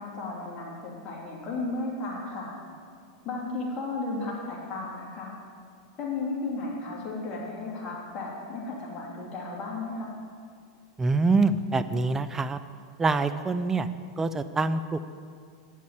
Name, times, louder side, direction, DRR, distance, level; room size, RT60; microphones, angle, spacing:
voice 1, 0.0-2.5 3.2-5.3 6.0-10.1, left 3 dB, 35° left, -3 dB, 2.9 m, -34 dB
voice 2, 11.0-12.6 13.0-13.9 14.2-15.1, right 3 dB, 15° right, 12 dB, 0.5 m, -25 dB
9.8 x 6.5 x 7.5 m, 2.1 s
hypercardioid pair, 105°, 3 cm